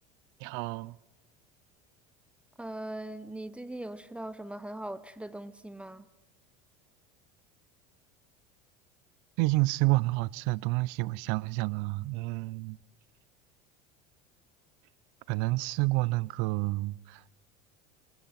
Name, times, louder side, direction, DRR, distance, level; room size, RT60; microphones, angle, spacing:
voice 1, 0.4-1.0 9.4-12.8 15.3-17.4, right 22 dB, 65° right, 0.7 m, -29 dB
voice 2, 2.6-6.1, right 1 dB, 5° right, 1.0 m, -40 dB
29.0 x 20.0 x 5.9 m
supercardioid pair, 110°, 21 cm